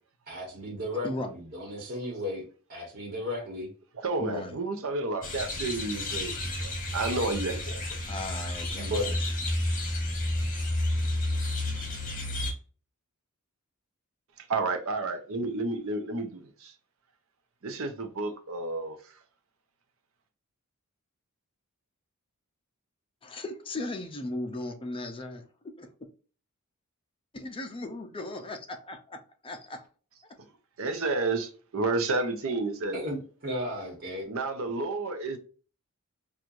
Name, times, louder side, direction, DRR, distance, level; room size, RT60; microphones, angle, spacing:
voice 1, 0.3-2.4 2.7-3.7 8.7-9.2 32.9-34.3, left 1 dB, 45° right, 1.4 m, -34 dB
voice 2, 0.9-1.4 4.2-4.6 8.1-9.1 23.2-25.9 27.3-29.9, left 2 dB, 25° left, 0.6 m, -37 dB
voice 3, 4.0-7.8 14.5-16.7 17.6-19.0 30.8-33.0 34.3-35.4, right 3 dB, 70° right, 0.7 m, -31 dB
sound 1, 5.2-12.5, left 1 dB, 40° left, 1.1 m, -31 dB
4.5 x 2.4 x 2.5 m
head